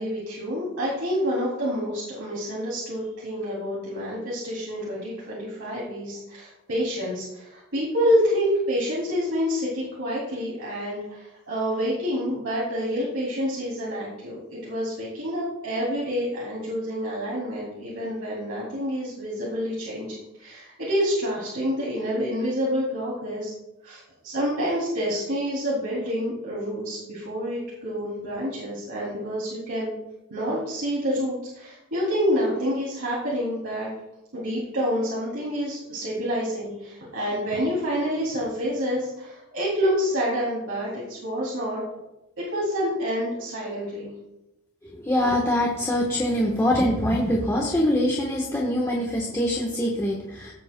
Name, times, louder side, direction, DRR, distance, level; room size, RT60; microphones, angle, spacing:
voice 1, 0.0-23.5 23.8-29.9 30.3-33.9 34.3-41.8 42.4-44.1, equal, 85° right, -6 dB, 2.8 m, -28 dB
voice 2, 44.8-50.5, left 1 dB, 15° left, -3 dB, 1.1 m, -24 dB
15.5 x 7.7 x 2.2 m, 0.92 s
head